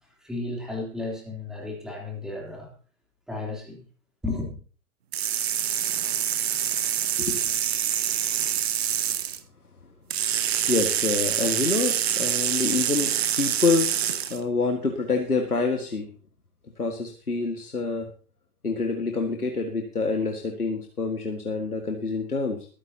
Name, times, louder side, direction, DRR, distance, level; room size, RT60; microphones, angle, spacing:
voice 1, 0.2-2.7 3.3-3.8 4.2-4.5, left 2 dB, ahead, 3.3 m, -33 dB
sound 1, 5.1-9.4 10.1-14.4, right 10 dB, 45° right, 1.3 m, -26 dB
voice 2, 7.2-7.5 10.7-16.1 16.8-18.1 18.6-22.7, left 4 dB, 80° left, 1.9 m, -27 dB
23.0 x 9.7 x 2.9 m
figure-of-eight pair, 120°, 45 cm